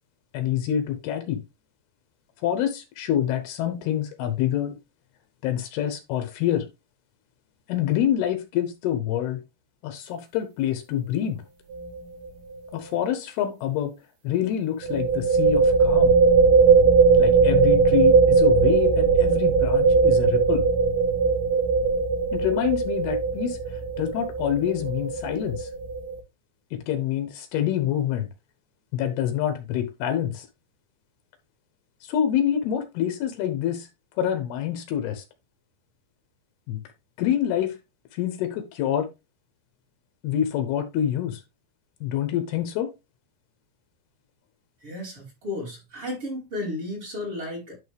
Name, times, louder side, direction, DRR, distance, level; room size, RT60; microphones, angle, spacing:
voice 1, 0.3-1.4 2.4-4.8 5.4-6.7 7.7-9.4 9.8-11.4 12.7-13.9 14.2-16.2 17.2-20.6 22.3-25.7 26.7-28.3 28.9-30.5 32.0-33.9 34.2-35.2 36.7-36.8 37.2-37.8 38.1-39.1 40.2-41.4 42.0-42.9, left 10 dB, 75° left, 2.7 m, -26 dB
sound 1, 11.7-12.0 12.2-12.3 14.8-26.2, right 5 dB, 70° right, 2.9 m, -19 dB
voice 2, 44.8-47.8, left 2 dB, 35° right, 2.9 m, -33 dB
11.0 x 3.7 x 3.3 m
omnidirectional pair, 4.9 m